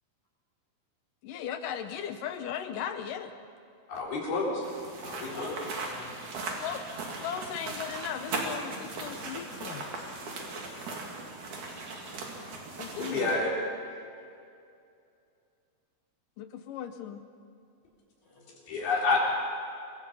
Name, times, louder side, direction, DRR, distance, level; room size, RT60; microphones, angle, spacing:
voice 1, 1.2-3.3 6.6-6.8 7.2-9.9 12.8-13.3 16.4-17.2, left 9 dB, 75° left, 9 dB, 2.3 m, -37 dB
voice 2, 3.9-4.6 5.0-5.5 13.0-13.5 13.8-14.0 18.7-19.2, left 3 dB, 90° left, -3 dB, 6.1 m, -29 dB
sound 1, 4.6-13.3, right 3 dB, 60° right, 4.0 m, -38 dB
voice 3, 5.3-6.1 9.5-11.0 12.3-12.4 18.2-18.9, left 1 dB, 55° left, -4 dB, 8.0 m, -48 dB
26.5 x 23.5 x 5.5 m, 2.4 s
omnidirectional pair, 4.2 m